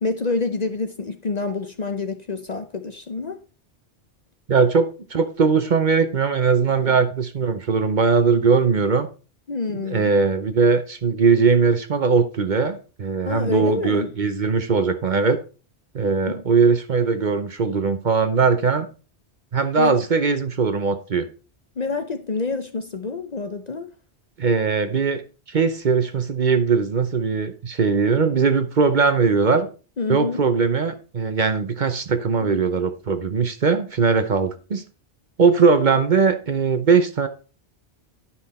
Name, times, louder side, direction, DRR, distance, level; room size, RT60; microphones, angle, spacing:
voice 1, 0.0-3.4 6.8-6.9 9.5-10.1 13.2-14.1 16.3-16.4 19.8-20.0 21.8-23.9 30.0-30.4 32.4-32.6, left 3 dB, 45° left, 0.7 m, -27 dB
voice 2, 4.5-9.1 9.7-15.4 15.9-18.9 19.5-21.3 24.4-25.2 25.5-29.7 30.1-34.8 35.4-37.3, right 5 dB, 50° right, 0.8 m, -20 dB
10.0 x 5.7 x 4.2 m
omnidirectional pair, 1.2 m